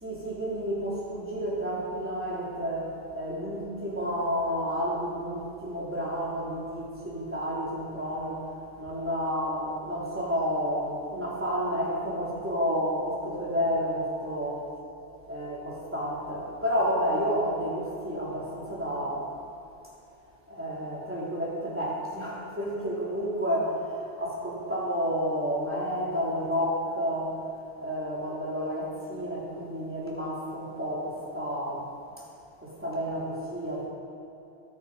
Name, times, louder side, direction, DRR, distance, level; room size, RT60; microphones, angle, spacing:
voice 1, 0.0-8.5 8.8-14.7 15.3-19.3 20.5-27.4 27.8-31.9 32.2-32.3 32.6-33.9, equal, 10° right, -7 dB, 3.9 m, -30 dB
22.5 x 9.5 x 5.3 m, 2.9 s
omnidirectional pair, 1.1 m